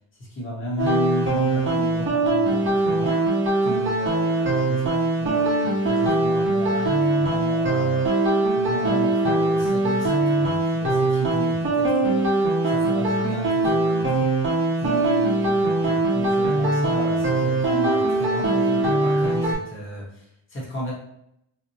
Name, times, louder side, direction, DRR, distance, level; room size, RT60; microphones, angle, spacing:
voice 1, 0.3-3.2 3.6-8.1 8.5-14.3 14.8-20.9, equal, 25° left, -5 dB, 1.0 m, -33 dB
sound 1, 0.8-19.5, right 2 dB, 25° right, 0.7 m, -21 dB
4.2 x 2.1 x 2.7 m, 0.74 s
wide cardioid pair, 170°, 46 cm